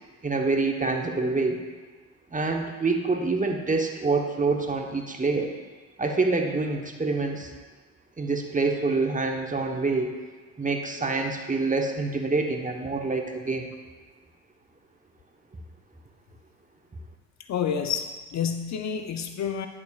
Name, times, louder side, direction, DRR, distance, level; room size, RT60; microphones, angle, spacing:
voice 1, 0.2-1.6 2.3-5.5 6.0-7.5 8.2-10.1 10.6-13.7, right 3 dB, 20° right, 3 dB, 1.0 m, -26 dB
voice 2, 17.5-19.7, left 7 dB, 50° left, 6 dB, 0.6 m, -29 dB
10.5 x 7.4 x 2.4 m, 1.4 s
supercardioid pair, 65°, 36 cm